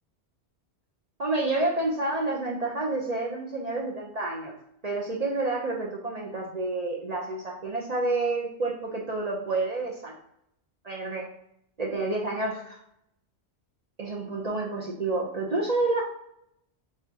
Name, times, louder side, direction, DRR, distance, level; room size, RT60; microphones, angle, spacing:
voice 1, 1.2-4.5 4.8-10.1 10.8-11.3 11.8-12.8 14.0-16.0, right 2 dB, 45° right, -2 dB, 0.6 m, -29 dB
7.1 x 2.5 x 2.7 m, 0.75 s
omnidirectional pair, 1.1 m